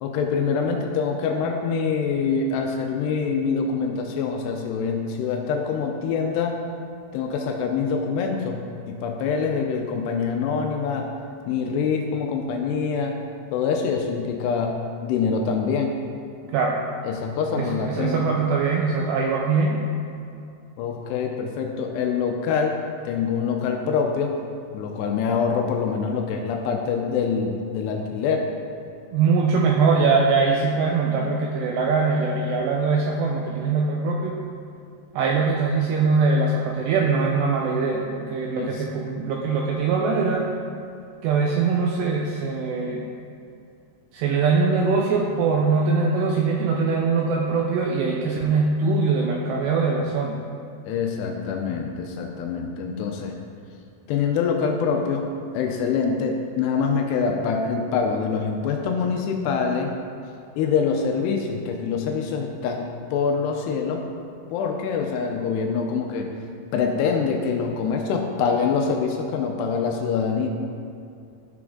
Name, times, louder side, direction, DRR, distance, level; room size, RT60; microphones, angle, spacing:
voice 1, 0.0-6.6 7.1-11.1 11.5-13.2 13.5-16.0 17.0-18.3 20.8-24.4 24.7-28.5 38.6-38.9 50.9-53.4 54.1-55.3 55.5-59.9 60.6-64.0 64.5-66.3 66.7-70.5, left 5 dB, 90° left, 2 dB, 2.4 m, -25 dB
voice 2, 17.5-19.8 29.1-34.3 35.1-40.5 41.2-43.1 44.1-50.4, right 4 dB, 90° right, -1 dB, 2.4 m, -22 dB
14.0 x 6.1 x 3.7 m, 2.5 s
omnidirectional pair, 5.6 m